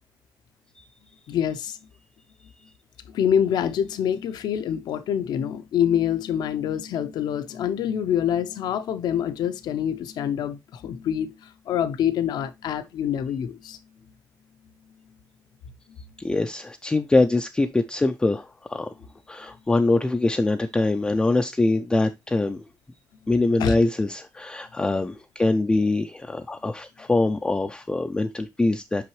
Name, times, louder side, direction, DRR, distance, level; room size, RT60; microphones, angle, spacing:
voice 1, 1.3-1.8 3.1-13.8 23.6-23.7, left 9 dB, 75° left, 0.6 m, -26 dB
voice 2, 16.2-18.9 19.3-22.6 23.3-29.1, left 2 dB, 10° left, 0.3 m, -23 dB
5.8 x 5.5 x 3.0 m
cardioid pair, 170°, 7 cm